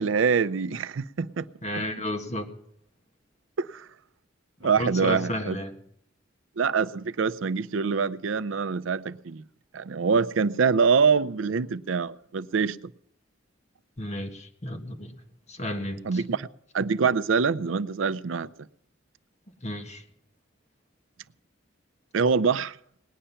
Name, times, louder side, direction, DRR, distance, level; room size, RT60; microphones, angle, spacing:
voice 1, 0.0-1.5 3.6-3.9 4.6-5.6 6.6-9.4 9.7-12.9 16.0-16.5 16.7-18.5 22.1-22.8, right 5 dB, 80° right, 0.5 m, -25 dB
voice 2, 1.6-2.5 4.6-5.7 14.0-15.2 15.5-16.2 19.6-20.0, left 1 dB, 35° left, 1.6 m, -32 dB
19.0 x 10.0 x 5.7 m
head